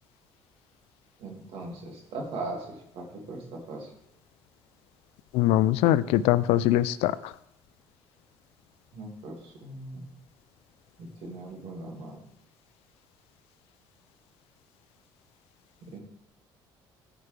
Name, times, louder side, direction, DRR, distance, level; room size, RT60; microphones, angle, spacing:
voice 1, 1.2-3.9 8.9-10.1 11.0-12.2 15.9-16.0, right 2 dB, 70° right, 0 dB, 2.2 m, -39 dB
voice 2, 5.3-7.2, left 13 dB, 85° left, 16 dB, 0.4 m, -22 dB
15.0 x 5.1 x 3.3 m, 0.80 s
cardioid pair, 105°, 10 cm